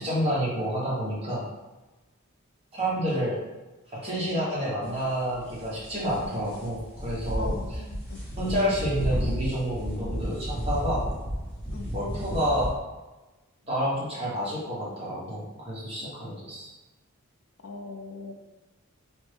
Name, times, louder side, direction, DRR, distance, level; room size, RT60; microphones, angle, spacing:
voice 1, 0.0-1.4 2.7-3.4 3.9-7.8 8.4-11.1 11.9-12.7 13.6-16.7, equal, 25° right, -8 dB, 1.0 m, -29 dB
sound 1, 4.8-12.7, equal, 5° left, 0.9 m, -33 dB
voice 2, 7.4-8.2 11.7-11.9 17.6-18.3, left 3 dB, 65° left, 3 dB, 0.4 m, -40 dB
3.3 x 2.1 x 3.2 m, 1.1 s
head